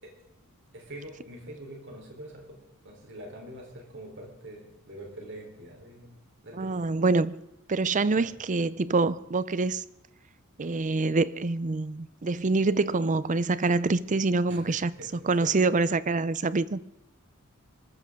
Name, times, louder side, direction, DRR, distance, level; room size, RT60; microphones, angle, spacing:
voice 1, 0.7-2.6 2.8-6.9 8.2-8.3 14.5-15.1 15.4-15.6, right 1 dB, 55° right, 3.8 m, -44 dB
voice 2, 6.5-7.4 7.7-9.8 10.6-14.9 15.2-16.8, right 3 dB, 35° right, 0.5 m, -26 dB
25.0 x 14.0 x 3.7 m
head